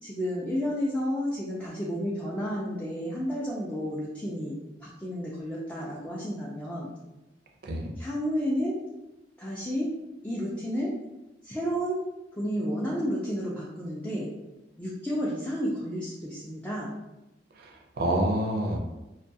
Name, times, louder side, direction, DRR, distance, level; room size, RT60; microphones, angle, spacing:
voice 1, 0.0-6.9 8.0-8.8 9.4-9.9 10.2-10.9 11.4-12.0 12.3-14.3 14.8-16.9, equal, 10° left, -6 dB, 0.3 m, -31 dB
voice 2, 17.6-18.8, right 1 dB, 55° right, 1 dB, 0.4 m, -28 dB
2.3 x 2.2 x 2.6 m, 0.98 s
head